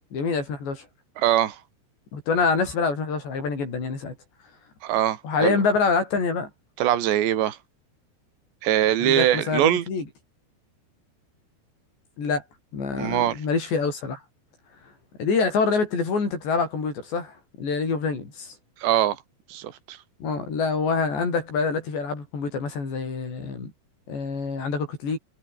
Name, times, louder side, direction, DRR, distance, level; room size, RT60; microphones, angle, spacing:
voice 1, 0.1-0.9 2.1-4.1 5.2-6.5 9.0-10.0 12.2-12.4 12.7-14.2 15.2-18.5 20.2-23.7 24.1-25.2, left 4 dB, 75° left, 10.0 m, -26 dB
voice 2, 1.2-1.6 4.8-5.6 6.8-7.6 8.6-9.9 13.0-13.4 18.8-19.2 19.5-20.0, right 12 dB, 80° right, 4.4 m, -22 dB
omnidirectional pair, 5.1 m